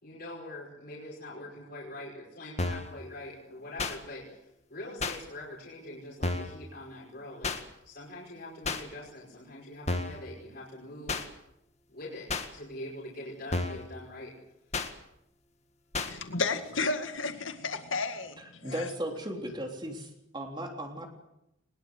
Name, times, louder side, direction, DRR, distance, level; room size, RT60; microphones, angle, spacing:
voice 1, 0.0-4.4 4.7-7.6 7.9-11.2 11.9-14.3, left 1 dB, 50° left, -3 dB, 5.3 m, -44 dB
sound 1, 2.6-2.9 3.8-4.0 5.0-5.2 6.2-6.6 7.4-7.6 8.6-8.8 9.9-10.2 11.1-11.3 12.3-12.5 13.5-13.9 14.7-14.9 15.9-16.1, left 3 dB, 35° left, 1.9 m, -31 dB
voice 2, 16.1-18.9, left 3 dB, 80° left, 8 dB, 2.1 m, -32 dB
voice 3, 18.6-21.1, right 1 dB, 25° right, 2 dB, 3.4 m, -36 dB
22.5 x 20.5 x 8.1 m, 0.83 s
head